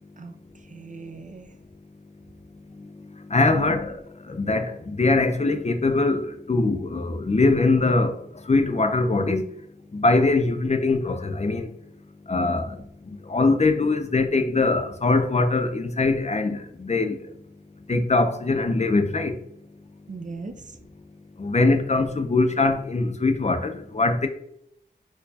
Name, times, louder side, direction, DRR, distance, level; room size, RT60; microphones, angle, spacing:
voice 1, 0.2-1.5 3.5-3.8 20.1-20.8, right 4 dB, 45° right, 0.5 m, -38 dB
voice 2, 3.3-4.0 4.3-8.2 8.5-9.4 9.9-11.7 12.3-12.8 13.3-17.2 17.9-19.3 21.4-24.3, left 3 dB, 40° left, 0.5 m, -22 dB
4.4 x 2.2 x 2.7 m
wide cardioid pair, 45°, 18 cm